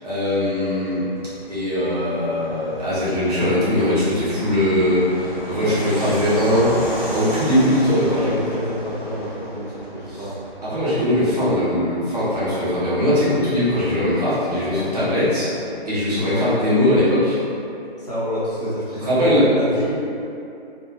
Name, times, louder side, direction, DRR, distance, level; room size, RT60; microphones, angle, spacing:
voice 1, 0.0-1.0 1.5-6.8 7.1-8.3 10.1-10.2 10.6-15.5 15.9-17.4 19.0-19.4, left 1 dB, 40° right, -12 dB, 1.1 m, -20 dB
Fixed-wing aircraft airplane, 0.8-17.0, equal, 5° right, 0.7 m, -35 dB
voice 2, 7.8-10.4 16.3-16.5 18.0-19.9, equal, 40° left, -10 dB, 0.8 m, -27 dB
2.7 x 2.4 x 2.8 m, 2.7 s
figure-of-eight pair, 155°, 32 cm